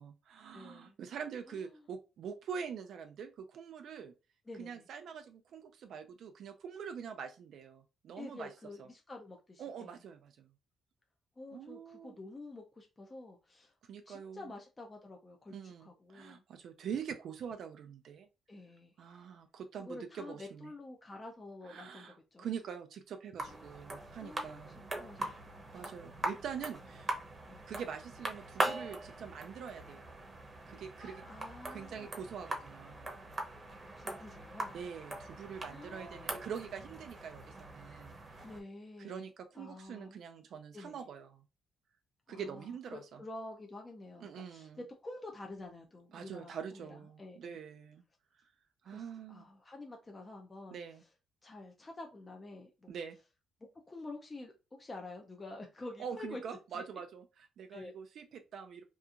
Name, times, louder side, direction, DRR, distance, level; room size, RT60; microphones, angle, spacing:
voice 1, 0.0-4.1 4.5-8.5 8.8-8.9 9.6-10.5 11.5-12.2 13.8-14.5 15.5-18.3 19.0-20.7 21.6-24.8 25.7-27.1 27.7-30.3 30.7-31.2 31.7-33.1 34.7-38.5 39.0-41.4 42.3-43.2 44.2-44.8 46.1-48.0 48.3-48.5 48.8-49.5 50.7-51.0 52.9-53.2 56.0-58.8, right 7 dB, 70° right, 6 dB, 0.3 m, -44 dB
voice 2, 0.5-0.9 1.5-1.8 4.5-4.8 8.2-10.0 11.4-13.7 14.1-16.4 18.5-18.9 19.8-22.5 23.5-23.8 24.2-24.6 25.0-25.2 25.5-25.6 27.5-27.6 31.0-32.1 34.0-34.7 35.7-36.4 38.4-39.2 39.6-40.2 40.7-41.0 42.3-47.6 48.8-50.8 51.4-53.0 53.7-56.4 56.7-56.8 57.7-57.9, left 2 dB, 25° left, 1 dB, 0.4 m, -49 dB
sound 1, 23.4-38.6, right 2 dB, 30° right, 0.7 m, -41 dB
2.7 x 2.3 x 2.4 m, 0.29 s
cardioid pair, 90°, 0 cm